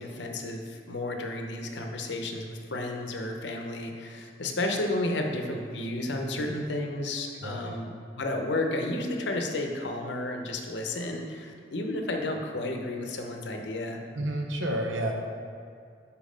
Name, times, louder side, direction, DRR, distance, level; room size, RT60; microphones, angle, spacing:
voice 1, 0.0-14.0, left 2 dB, 70° left, 3 dB, 0.7 m, -32 dB
voice 2, 7.4-7.8 14.1-15.1, right 1 dB, 85° right, 2 dB, 0.8 m, -31 dB
5.3 x 4.7 x 5.0 m, 2.4 s
head